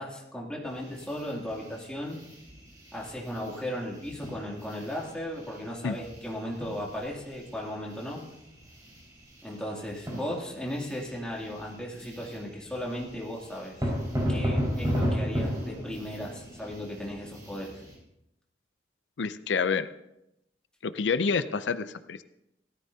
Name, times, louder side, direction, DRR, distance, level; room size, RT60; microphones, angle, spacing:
voice 1, 0.0-2.2 2.9-8.2 9.4-13.9 14.3-17.8, equal, 5° left, -3 dB, 2.7 m, -36 dB
sound 1, 0.6-18.0, equal, 20° right, 5.0 m, -36 dB
voice 2, 19.2-19.9 20.8-22.2, left 5 dB, 90° left, 12 dB, 0.5 m, -28 dB
17.5 x 13.5 x 2.8 m, 0.84 s
head